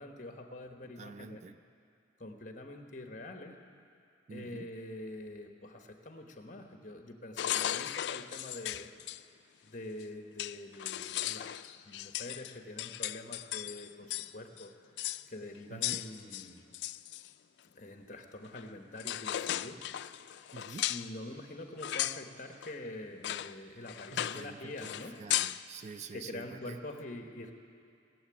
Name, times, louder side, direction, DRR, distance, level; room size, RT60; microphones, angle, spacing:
voice 1, 0.0-1.5 2.2-3.6 4.3-8.9 9.6-14.7 15.3-16.7 17.7-20.2 20.7-25.2 26.1-27.5, left 1 dB, 45° left, 4 dB, 1.2 m, -45 dB
voice 2, 1.0-1.6 4.3-4.7 15.7-16.0 20.5-20.9 24.1-24.9 25.2-26.8, right 5 dB, 40° right, 11 dB, 0.4 m, -47 dB
sound 1, 7.4-9.2 10.0-10.1 10.4-14.3 14.6-14.7 15.0-15.2 15.8-17.3 18.6-18.7 19.0-21.1 21.8-22.2 22.6-22.7 23.2-23.5 23.9-24.5 24.8-25.6, left 13 dB, 65° left, 0.3 m, -36 dB
18.5 x 7.8 x 8.8 m, 2.6 s
head